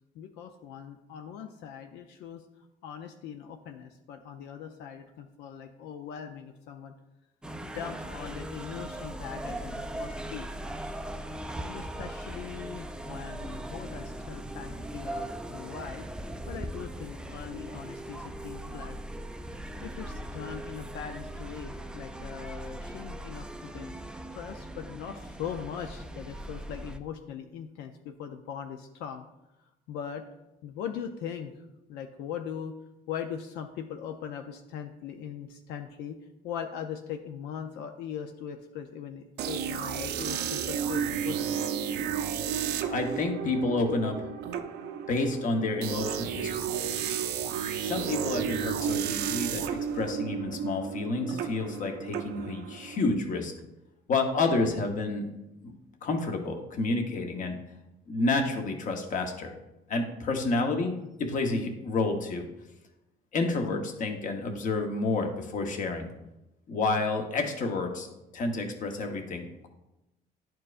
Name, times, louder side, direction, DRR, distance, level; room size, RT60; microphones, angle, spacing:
voice 1, 0.1-2.4 2.8-6.9 7.6-10.5 11.6-16.1 16.5-19.0 19.8-23.9 24.3-29.2 29.9-30.2 30.6-32.7 33.1-36.2 36.4-41.6, left 8 dB, 90° left, 5 dB, 0.5 m, -40 dB
sound 1, 7.4-27.0, right 1 dB, 5° right, 0.3 m, -39 dB
sound 2, 39.4-53.1, right 8 dB, 75° right, 0.6 m, -32 dB
voice 2, 42.9-44.3 45.1-46.7 47.8-53.5 54.1-55.3 55.6-55.7 56.0-57.6 58.1-59.5 59.9-62.5 63.3-66.1 66.7-68.1 68.3-69.7, left 3 dB, 50° left, 4 dB, 1.0 m, -29 dB
10.5 x 4.5 x 2.5 m, 0.93 s
cardioid pair, 110°, 17 cm